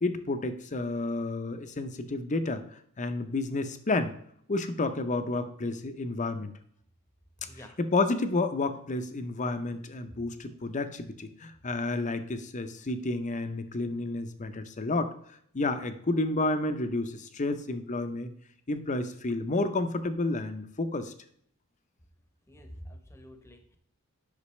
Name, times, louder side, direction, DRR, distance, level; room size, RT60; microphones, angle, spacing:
voice 1, 0.0-2.6 3.0-4.1 4.5-6.5 7.8-15.1 15.5-18.3 18.7-21.1, left 2 dB, 35° left, 9 dB, 0.7 m, -30 dB
voice 2, 7.5-7.8 22.5-23.8, equal, 10° left, 6 dB, 0.9 m, -48 dB
8.4 x 5.9 x 3.2 m, 0.66 s
head